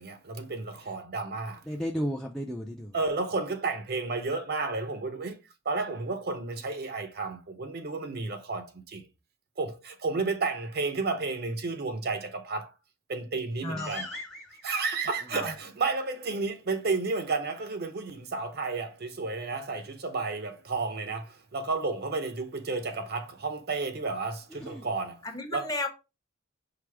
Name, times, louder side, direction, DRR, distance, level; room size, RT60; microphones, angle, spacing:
voice 1, 0.0-1.7 2.9-5.4 5.6-9.1 9.6-12.7 13.1-14.1 14.6-25.3 25.5-25.7, right 3 dB, 55° right, 0.6 m, -32 dB
voice 2, 1.7-2.9 13.8-14.7 15.3-15.4 24.5-24.9, equal, ahead, 0.4 m, -35 dB
voice 3, 13.6-14.0 15.3-15.5 25.3-25.9, left 2 dB, 20° left, 0.8 m, -33 dB
4.8 x 2.0 x 4.5 m
head